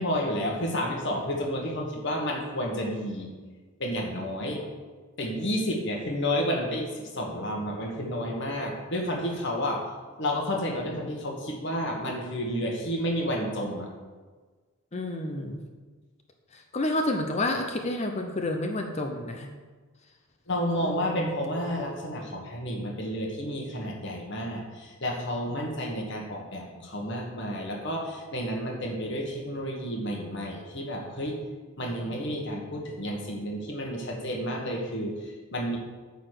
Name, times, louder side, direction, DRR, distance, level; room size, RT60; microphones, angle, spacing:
voice 1, 0.0-3.3 3.8-4.6 5.2-9.9 10.2-13.9 15.4-15.5 20.5-31.4 31.8-35.8, equal, 55° left, 1 dB, 1.4 m, -31 dB
voice 2, 14.9-15.6 16.5-19.5 20.8-21.4, left 1 dB, 30° left, 4 dB, 0.6 m, -30 dB
8.7 x 4.1 x 6.6 m, 1.4 s
head